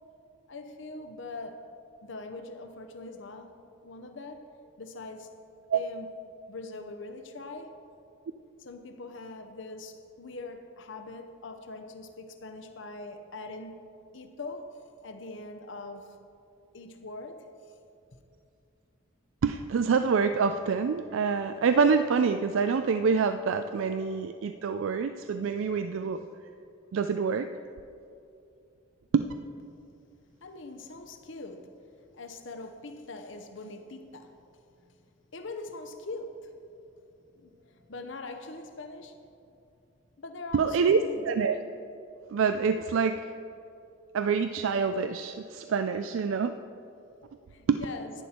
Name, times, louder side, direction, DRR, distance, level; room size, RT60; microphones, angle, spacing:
voice 1, 0.5-1.6 2.0-4.5 4.8-5.3 5.7-6.1 6.5-7.8 8.6-13.8 14.1-16.2 16.7-17.5 30.4-31.7 32.1-34.4 35.3-36.5 37.3-39.6 40.2-41.2 47.5-48.1, left 3 dB, 65° left, 0.8 m, -42 dB
voice 2, 19.4-26.2 26.9-27.5 29.1-29.3 40.5-41.6 42.3-43.3 44.1-46.5 47.7-47.8, right 5 dB, 75° right, 0.4 m, -26 dB
11.0 x 10.0 x 4.3 m
head